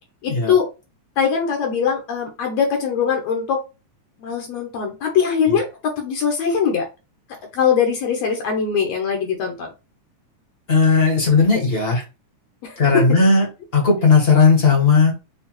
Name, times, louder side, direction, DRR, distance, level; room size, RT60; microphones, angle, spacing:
voice 1, 0.2-0.7 1.2-3.6 4.2-6.9 7.5-9.7 12.6-13.1, left 7 dB, 70° left, 2 dB, 1.9 m, -21 dB
voice 2, 10.7-12.0 12.8-13.4 13.7-15.1, left 4 dB, 40° left, -1 dB, 0.9 m, -16 dB
6.4 x 2.3 x 3.0 m, 0.28 s
omnidirectional pair, 3.3 m